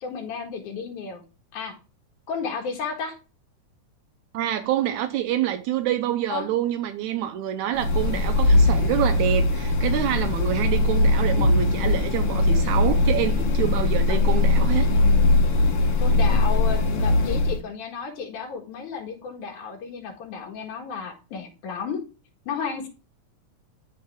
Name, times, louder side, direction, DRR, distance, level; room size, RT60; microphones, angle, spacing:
voice 1, 0.0-1.2 1.5-1.7 2.3-3.2 6.3-6.5 14.1-14.2 16.0-22.0 22.5-22.9, left 6 dB, 85° left, 3.1 m, -33 dB
voice 2, 4.3-14.9, right 11 dB, 80° right, 2.1 m, -27 dB
sound 1, 7.7-17.6, left 2 dB, 55° left, 2.0 m, -20 dB
12.0 x 4.5 x 3.5 m
omnidirectional pair, 3.4 m